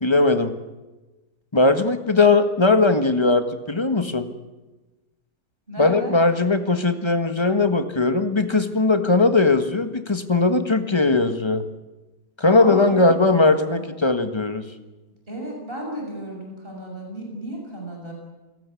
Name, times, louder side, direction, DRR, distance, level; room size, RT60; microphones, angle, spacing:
voice 1, 0.0-0.5 1.5-4.3 5.8-11.6 12.4-14.6, left 3 dB, 20° left, 8 dB, 1.4 m, -19 dB
voice 2, 5.7-6.2 12.5-13.9 15.3-18.1, equal, 35° right, 0 dB, 7.1 m, -34 dB
29.0 x 17.5 x 8.4 m, 1.1 s
omnidirectional pair, 1.7 m